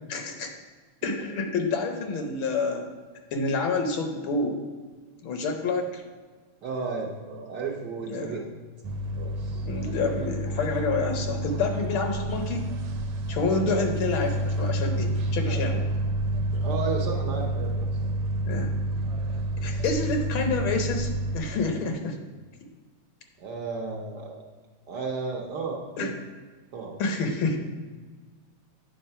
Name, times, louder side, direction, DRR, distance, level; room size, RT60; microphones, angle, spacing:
voice 1, 0.1-0.5 1.0-2.9 3.3-4.6 5.2-6.0 8.1-8.4 9.6-12.6 13.3-15.8 18.5-18.7 19.6-22.2 26.0-26.1 27.0-27.6, left 3 dB, 70° left, 4 dB, 1.5 m, -28 dB
voice 2, 6.6-8.4 9.2-9.7 13.5-13.8 15.4-15.8 16.5-17.9 19.5-19.9 23.4-24.5 24.9-26.1 26.7-27.0, right 4 dB, 60° right, -1 dB, 1.3 m, -34 dB
sound 1, 8.8-21.4, right 1 dB, 85° right, 1.6 m, -29 dB
8.7 x 3.8 x 5.5 m, 1.4 s
omnidirectional pair, 2.4 m